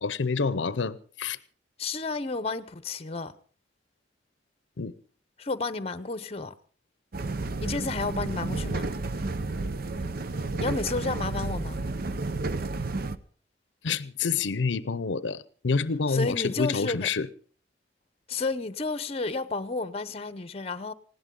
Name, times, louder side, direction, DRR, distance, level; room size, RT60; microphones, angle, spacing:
voice 1, 0.0-1.4 4.8-4.9 13.8-17.3, left 5 dB, 85° left, 0.7 m, -28 dB
voice 2, 1.8-3.3 5.4-6.5 7.6-8.9 10.6-11.8 16.1-17.1 18.3-20.9, left 3 dB, 35° left, 0.8 m, -31 dB
sound 1, 7.1-13.2, right 3 dB, 55° right, 0.7 m, -31 dB
19.5 x 16.5 x 3.8 m
head